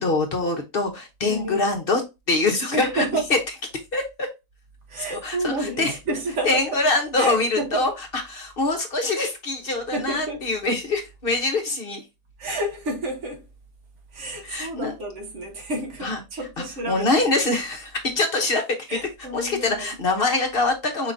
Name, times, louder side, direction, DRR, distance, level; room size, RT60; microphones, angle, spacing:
voice 1, 0.0-2.0 2.3-3.0 3.3-3.4 3.9-4.3 5.0-6.0 6.4-12.0 14.4-14.9 16.0-16.2 16.6-19.0 19.3-21.1, left 2 dB, 45° left, 1.0 m, -24 dB
voice 2, 1.3-1.7 2.7-3.3 4.9-6.6 7.2-7.9 9.9-10.4 12.4-13.5 14.1-17.2 18.9-19.9, right 1 dB, 60° right, 1.1 m, -30 dB
5.0 x 3.7 x 2.6 m
omnidirectional pair, 1.5 m